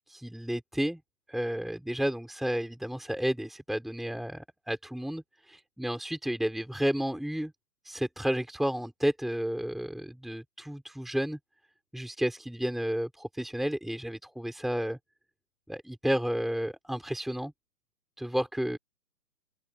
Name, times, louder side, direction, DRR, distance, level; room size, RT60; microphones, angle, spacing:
voice 1, 0.1-1.0 1.3-7.5 7.8-11.4 11.9-15.0 15.7-17.5 18.2-18.8, equal, ahead, 4.2 m, -32 dB
open air
hypercardioid pair, 170°, 48 cm